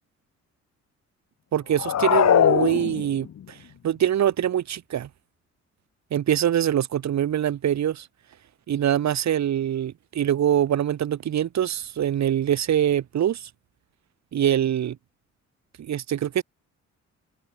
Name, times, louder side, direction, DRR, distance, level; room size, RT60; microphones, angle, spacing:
voice 1, 1.5-3.6 3.8-5.1 6.1-8.1 8.7-13.5 14.3-15.0 15.8-16.4, right 10 dB, 65° right, 3.6 m, -24 dB
sound 1, 1.7-3.4, left 9 dB, 60° left, 3.4 m, -20 dB
cardioid pair, 90°, 30 cm